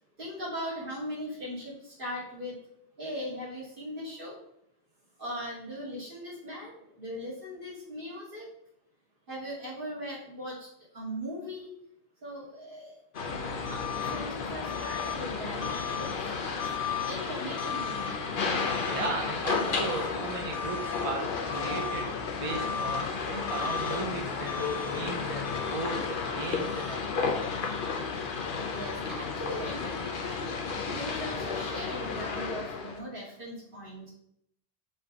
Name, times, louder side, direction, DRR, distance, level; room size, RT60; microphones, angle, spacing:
voice 1, 0.2-2.6 3.0-4.4 5.2-8.5 9.3-11.7 12.2-16.1 16.4-18.2 28.7-30.6 30.9-34.1, equal, 50° right, -6 dB, 2.6 m, -39 dB
sound 1, 13.1-33.0, left 5 dB, 55° left, 0.9 m, -32 dB
voice 2, 18.9-22.1 22.4-27.3, right 2 dB, 35° right, 0 dB, 0.7 m, -36 dB
5.3 x 3.7 x 4.8 m, 0.72 s
omnidirectional pair, 1.1 m